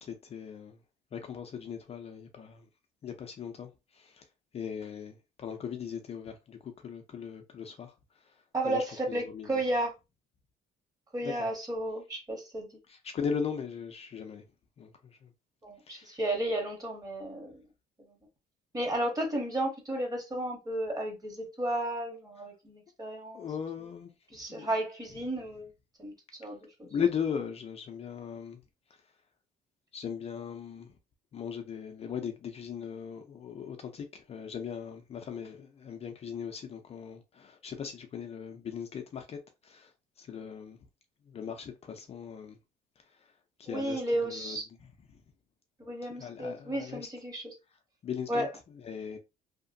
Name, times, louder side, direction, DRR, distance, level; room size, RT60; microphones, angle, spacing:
voice 1, 0.0-0.8 1.1-2.6 3.0-4.2 4.5-7.9 8.7-9.6 11.2-11.5 12.9-14.4 14.8-14.9 15.2-15.3 15.9-16.2 23.3-24.1 24.5-24.7 26.9-28.6 29.9-30.9 31.3-39.9 40.2-40.8 41.3-42.6 43.6-44.6 46.2-47.0 48.0-48.5 48.8-49.2, left 7 dB, 40° left, 0.4 m, -38 dB
voice 2, 8.5-9.9 11.1-12.7 15.6-17.7 18.0-18.2 18.7-23.5 24.3-25.7 26.0-26.1 26.4-26.9 43.7-44.7 45.8-47.5 48.3-48.5, right 1 dB, 20° right, 1.1 m, -33 dB
2.8 x 2.1 x 2.6 m
cardioid pair, 110°, 17 cm